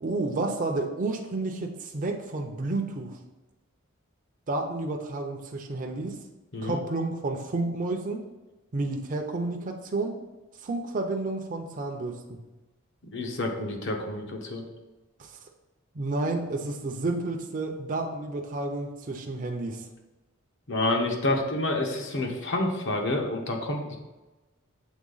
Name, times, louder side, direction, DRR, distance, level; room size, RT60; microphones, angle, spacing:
voice 1, 0.0-3.2 4.5-6.2 6.6-8.2 8.7-10.2 10.6-12.4 15.2-15.3 15.9-19.8, right 2 dB, 40° right, 2 dB, 0.5 m, -31 dB
voice 2, 13.1-14.6 20.7-24.0, left 2 dB, 60° left, 2 dB, 1.0 m, -28 dB
7.2 x 3.4 x 3.9 m, 1.1 s
head